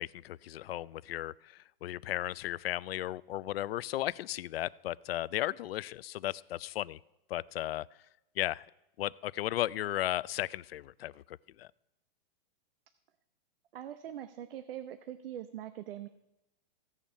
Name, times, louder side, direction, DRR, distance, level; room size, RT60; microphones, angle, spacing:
voice 1, 0.0-1.3 1.8-7.0 7.3-7.9 8.4-8.6 9.0-11.7, left 14 dB, 80° left, 22 dB, 0.5 m, -35 dB
voice 2, 13.7-16.1, right 11 dB, 75° right, 11 dB, 0.8 m, -42 dB
16.0 x 7.2 x 5.5 m, 0.92 s
supercardioid pair, 170°, 29 cm